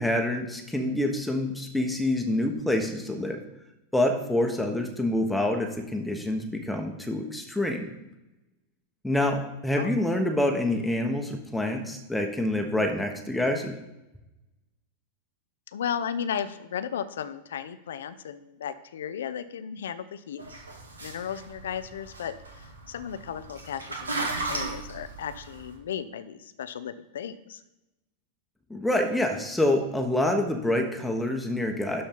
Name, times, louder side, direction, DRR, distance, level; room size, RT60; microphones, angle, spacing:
voice 1, 0.0-3.4 3.9-7.9 9.0-13.7 28.7-32.0, left 1 dB, 5° left, 3 dB, 1.2 m, -27 dB
voice 2, 15.7-20.6 21.0-27.6, left 8 dB, 60° left, 12 dB, 0.6 m, -35 dB
sound 1, 20.4-25.7, right 3 dB, 75° right, 1.8 m, -36 dB
12.0 x 4.3 x 5.3 m, 0.97 s
figure-of-eight pair, 90°, 0 cm